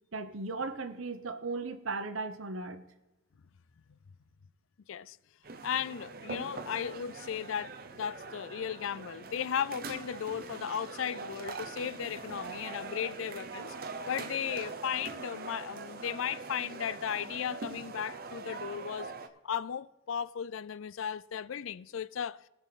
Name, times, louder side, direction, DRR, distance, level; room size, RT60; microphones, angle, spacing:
voice 1, 0.1-2.8, right 3 dB, 90° right, 1.0 m, -36 dB
sound 1, 5.4-19.3, right 4 dB, 45° right, 0.7 m, -43 dB
voice 2, 5.6-13.7 14.1-19.1 19.4-22.4, left 8 dB, 80° left, 0.4 m, -36 dB
18.5 x 6.2 x 4.1 m
head